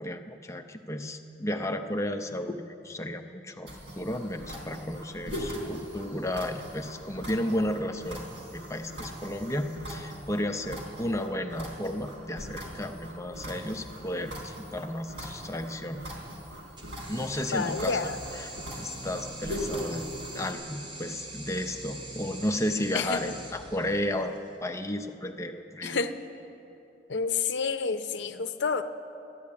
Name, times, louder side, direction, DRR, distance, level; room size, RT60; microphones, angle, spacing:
voice 1, 0.0-8.2 8.5-16.1 17.1-20.1 20.3-24.3 24.6-26.0, left 1 dB, 15° left, 6 dB, 0.6 m, -33 dB
sound 1, 3.7-20.5, equal, 75° right, 3.6 m, -41 dB
sound 2, 16.8-24.4, right 2 dB, 25° right, 1.0 m, -43 dB
voice 2, 17.5-18.2 22.9-23.2 25.8-26.1 27.1-28.8, left 5 dB, 70° left, 9 dB, 0.7 m, -29 dB
13.5 x 10.5 x 8.4 m, 2.8 s
head